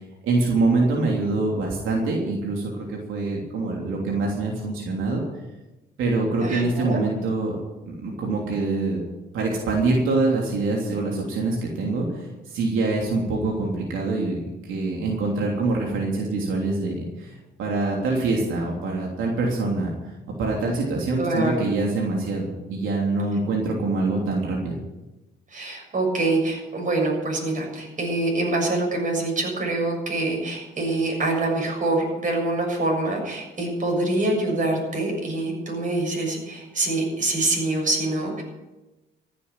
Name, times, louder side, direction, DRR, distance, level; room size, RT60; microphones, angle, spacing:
voice 1, 0.2-5.2 6.0-7.6 7.9-9.0 9.3-19.9 20.4-24.8, right 3 dB, 85° right, -1 dB, 3.2 m, -25 dB
voice 2, 6.4-7.0 21.2-21.6 25.5-38.4, right 2 dB, 40° right, 0 dB, 6.9 m, -25 dB
15.0 x 8.5 x 9.0 m, 1.1 s
cardioid pair, 90°, 20 cm